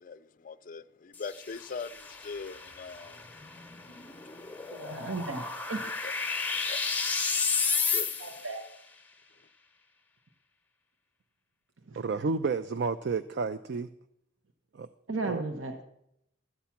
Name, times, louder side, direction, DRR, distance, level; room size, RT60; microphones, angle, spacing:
voice 1, 0.0-3.2 6.0-6.1 6.6-6.8 7.9-8.1, left 4 dB, 40° left, 0.4 m, -41 dB
sound 1, 1.1-8.6, left 5 dB, 10° left, 0.9 m, -33 dB
voice 2, 4.7-5.8 8.2-8.6 11.9-12.0 15.1-15.8, right 3 dB, 80° right, 0.9 m, -35 dB
voice 3, 12.0-13.9 14.7-14.9 15.3-15.4, right 4 dB, 55° right, 0.4 m, -31 dB
12.5 x 8.3 x 5.8 m
head